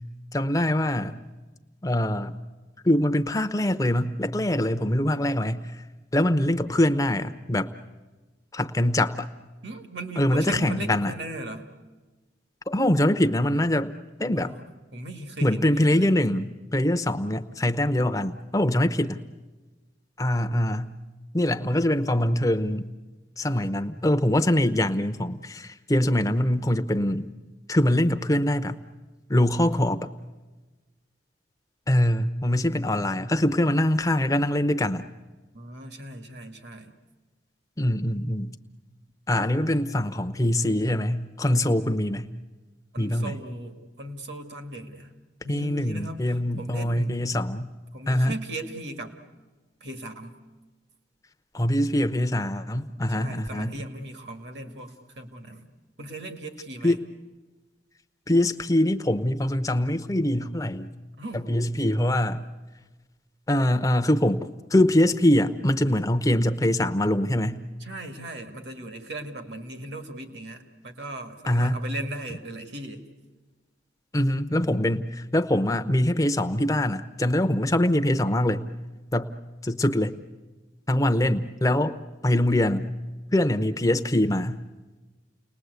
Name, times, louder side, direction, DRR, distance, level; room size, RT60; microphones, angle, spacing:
voice 1, 0.3-1.2 1.8-2.4 2.8-5.8 6.1-7.7 8.5-9.3 10.2-11.1 12.7-13.9 14.2-14.5 15.4-19.2 20.2-21.0 21.3-22.9 23.4-27.3 27.7-28.8 29.3-30.1 31.9-35.1 37.8-38.5 39.3-42.3 43.0-43.4 45.5-47.7 48.1-48.3 51.5-53.8 56.8-57.0 58.3-60.9 61.3-62.4 63.5-67.6 71.5-71.8 74.1-78.7 79.1-79.3 79.6-80.2 80.9-82.0 82.2-82.9 83.3-84.6, left 1 dB, 20° left, 9 dB, 0.8 m, -23 dB
voice 2, 9.6-11.7 14.3-14.6 14.9-16.2 35.5-36.9 42.9-45.1 45.4-47.2 47.9-49.2 49.8-50.4 53.1-55.7 56.0-57.0 61.2-61.5 67.8-73.0, right 1 dB, 65° right, 6 dB, 2.1 m, -38 dB
30.0 x 20.0 x 8.2 m, 1.2 s
head